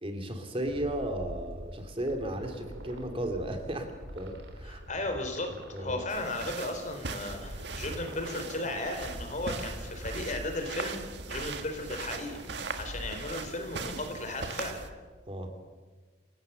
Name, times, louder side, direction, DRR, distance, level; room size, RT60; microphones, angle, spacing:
voice 1, 0.0-4.8 5.7-6.0 15.3-15.5, right 1 dB, 30° right, 6 dB, 2.6 m, -35 dB
sound 1, 0.6-15.0, equal, 85° right, 4.0 m, -45 dB
voice 2, 4.6-5.5 5.8-11.0 11.3-14.8, left 2 dB, 45° left, 5 dB, 3.9 m, -35 dB
sound 2, 6.1-14.9, right 4 dB, 70° right, 1.7 m, -40 dB
28.5 x 17.5 x 7.0 m, 1.3 s
head